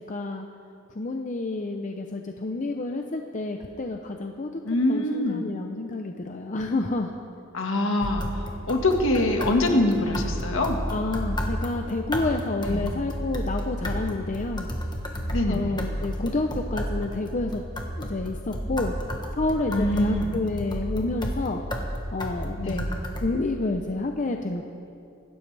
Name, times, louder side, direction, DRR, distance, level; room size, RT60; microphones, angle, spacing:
voice 1, 0.1-0.5 1.0-4.6 4.9-7.1 10.9-14.7 15.5-17.6 18.0-18.9 19.3-21.6 22.1-22.9 23.2-24.6, left 2 dB, 40° left, 4 dB, 0.6 m, -29 dB
voice 2, 4.6-5.4 7.5-10.8 12.6-12.9 15.3-15.8 19.7-20.4 22.6-22.9, left 1 dB, 70° left, 3 dB, 1.7 m, -24 dB
sound 1, 8.0-23.3, equal, 20° left, 1.4 m, -32 dB
25.5 x 12.5 x 3.4 m, 2.5 s
head